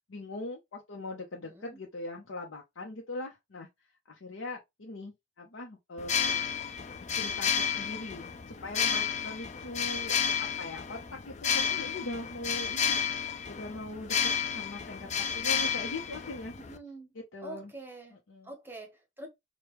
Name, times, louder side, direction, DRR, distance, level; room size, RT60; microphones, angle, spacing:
voice 1, 0.1-3.7 4.1-6.7 7.0-16.5 17.1-17.7 18.1-18.5, left 2 dB, 85° left, 0.8 m, -41 dB
voice 2, 1.4-1.8 16.6-17.1 17.4-19.3, right 2 dB, 10° right, 0.9 m, -46 dB
sound 1, 6.0-16.8, left 7 dB, 35° left, 0.4 m, -31 dB
5.1 x 2.3 x 3.0 m
head